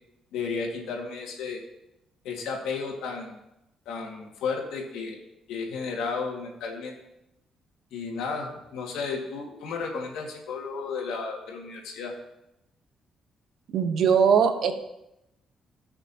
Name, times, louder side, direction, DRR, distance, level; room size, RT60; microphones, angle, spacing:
voice 1, 0.3-1.6 2.2-3.4 3.9-5.2 5.5-6.9 7.9-12.1, left 5 dB, 90° left, 1 dB, 2.0 m, -33 dB
voice 2, 13.7-14.7, right 7 dB, 70° right, 7 dB, 1.1 m, -20 dB
17.5 x 6.0 x 2.9 m, 0.88 s
cardioid pair, 90°, 0 cm